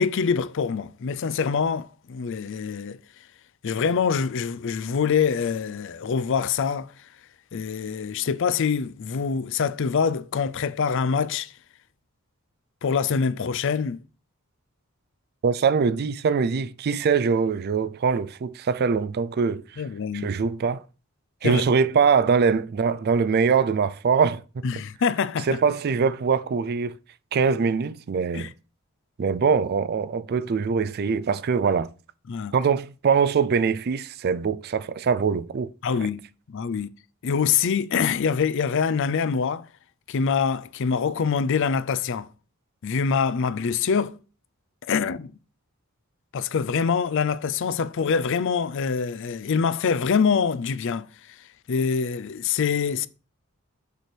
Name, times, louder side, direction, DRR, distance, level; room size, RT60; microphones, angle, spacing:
voice 1, 0.0-3.0 3.6-6.9 7.5-11.5 12.8-14.0 19.8-20.3 21.4-21.6 24.6-25.5 28.3-28.5 32.3-32.5 35.8-36.2 36.5-36.9 37.2-39.6 40.1-42.3 42.8-44.2 44.9-45.3 46.3-51.1 51.7-53.1, left 6 dB, 60° left, 0.4 m, -25 dB
voice 2, 15.4-19.8 20.1-20.8 21.4-24.4 25.5-26.9 27.3-28.5 29.2-31.9 32.5-35.7, right 5 dB, 50° right, 0.4 m, -23 dB
6.7 x 3.3 x 6.0 m
head